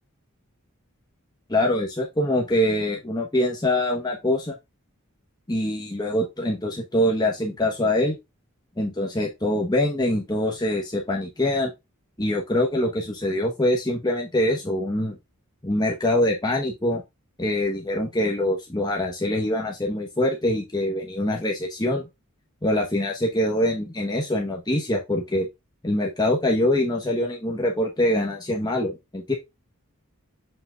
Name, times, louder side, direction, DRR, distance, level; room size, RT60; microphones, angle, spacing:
voice 1, 1.5-4.5 5.5-8.2 8.8-11.7 12.2-15.2 15.6-17.0 17.4-22.1 22.6-25.5 25.8-29.3, left 1 dB, 20° left, -1 dB, 1.2 m, -24 dB
7.8 x 5.7 x 2.4 m, 0.22 s
head